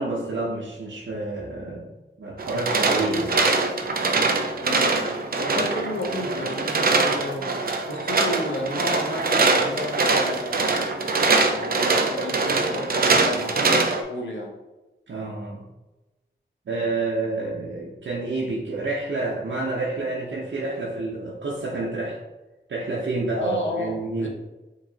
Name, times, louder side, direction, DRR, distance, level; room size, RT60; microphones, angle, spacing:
voice 1, 0.0-1.9 2.2-3.4 15.1-15.6 16.7-22.2 22.7-24.3, right 2 dB, 80° right, -5 dB, 0.8 m, -29 dB
sound 1, 2.4-14.0, right 3 dB, 50° right, 0.5 m, -23 dB
voice 2, 4.6-7.6 7.9-10.8 11.4-14.6 23.3-24.3, left 1 dB, 80° left, 0 dB, 0.9 m, -32 dB
4.8 x 3.1 x 2.8 m, 1.1 s
wide cardioid pair, 100°, 19 cm